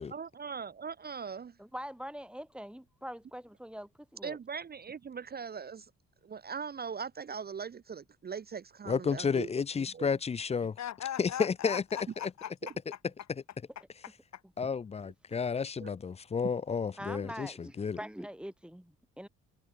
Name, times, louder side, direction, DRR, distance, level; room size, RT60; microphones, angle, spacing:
voice 1, 0.0-1.6 4.2-5.9 6.2-9.5 9.8-10.1 15.8-15.9, right 6 dB, 30° right, 0.7 m, -40 dB
voice 2, 1.6-4.4 17.0-19.3, equal, 5° right, 3.5 m, -43 dB
voice 3, 8.9-10.8 11.2-11.8 14.6-18.0, left 6 dB, 20° left, 0.4 m, -31 dB
voice 4, 10.8-12.7 14.0-14.4, left 10 dB, 65° left, 2.1 m, -40 dB
cardioid pair, 90°, 30 cm